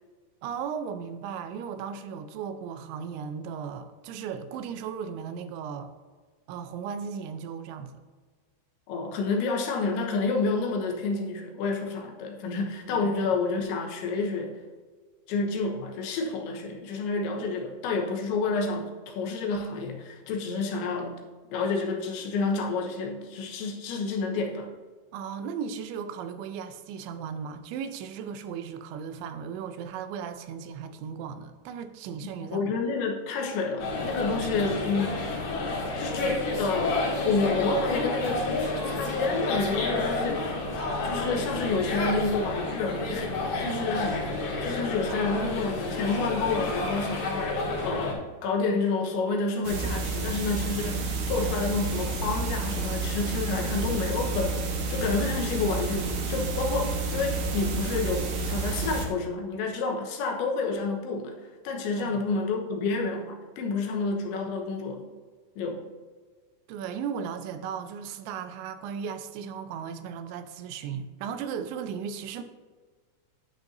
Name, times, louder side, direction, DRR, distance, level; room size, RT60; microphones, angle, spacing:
voice 1, 0.4-5.9 6.5-8.0 12.5-12.6 12.9-13.2 25.1-32.6 34.5-34.8 43.7-44.4 45.2-45.4 61.9-62.2 66.7-72.4, right 7 dB, 90° right, 9 dB, 3.1 m, -36 dB
voice 2, 8.9-14.6 15.3-21.2 21.5-24.7 32.5-35.2 36.0-40.6 41.0-44.2 44.6-61.4 61.6-65.1 65.6-65.8, left 4 dB, 85° left, 2 dB, 3.5 m, -29 dB
sound 1, 33.8-48.1, left 2 dB, 65° left, 3.8 m, -30 dB
sound 2, 49.6-59.1, right 3 dB, 65° right, 1.8 m, -30 dB
10.0 x 9.3 x 2.7 m, 1.5 s
omnidirectional pair, 5.2 m